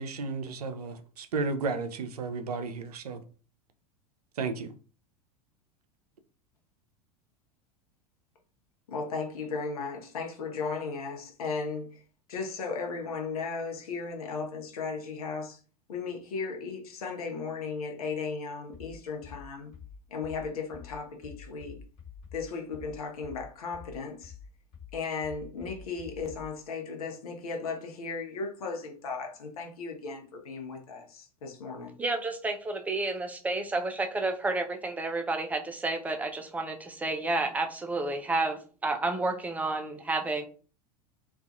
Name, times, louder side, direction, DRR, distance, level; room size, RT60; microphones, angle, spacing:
voice 1, 0.0-3.2 4.4-4.7, right 4 dB, 75° right, 0.4 m, -33 dB
voice 2, 8.9-12.0 12.3-15.6 15.9-19.7 20.1-21.8 22.3-24.3 24.9-31.9, left 4 dB, 65° left, 0.7 m, -36 dB
sound 1, 18.7-26.6, left 6 dB, 40° left, 1.3 m, -48 dB
voice 3, 32.0-40.4, right 2 dB, 10° right, 0.4 m, -30 dB
2.4 x 2.3 x 2.5 m
figure-of-eight pair, 85°, 20 cm